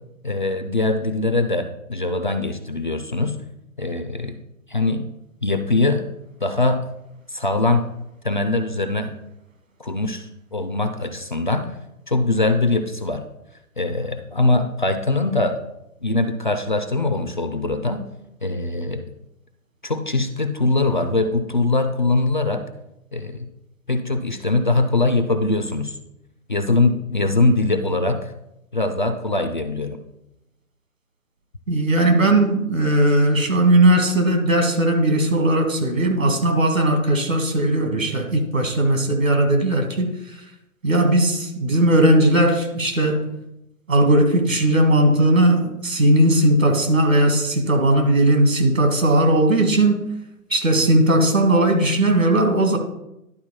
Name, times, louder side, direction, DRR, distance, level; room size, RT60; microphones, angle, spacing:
voice 1, 0.2-3.4 3.8-4.4 4.7-5.0 5.4-6.1 6.4-6.8 7.3-7.8 8.2-9.1 9.8-11.7 12.1-13.2 13.8-15.6 16.0-18.0 18.4-19.0 19.8-22.6 23.1-23.5 23.9-26.0 26.5-28.3 28.7-30.0, left 2 dB, 35° left, 8 dB, 0.4 m, -22 dB
voice 2, 31.7-40.1 40.8-43.2 43.9-50.1 50.5-52.8, right 1 dB, 65° right, 4 dB, 1.8 m, -18 dB
11.0 x 4.2 x 4.2 m, 0.86 s
figure-of-eight pair, 140°, 42 cm